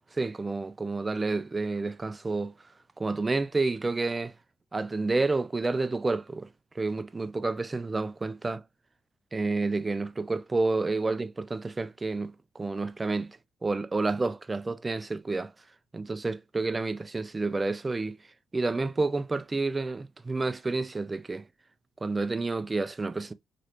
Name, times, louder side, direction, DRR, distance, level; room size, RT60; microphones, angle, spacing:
voice 1, 0.1-2.5 3.0-4.3 4.7-6.5 6.8-8.6 9.3-15.5 15.9-18.2 18.5-21.4 22.0-23.3, right 3 dB, 20° right, 0.3 m, -29 dB
3.0 x 2.9 x 2.7 m
cardioid pair, 90°, 0 cm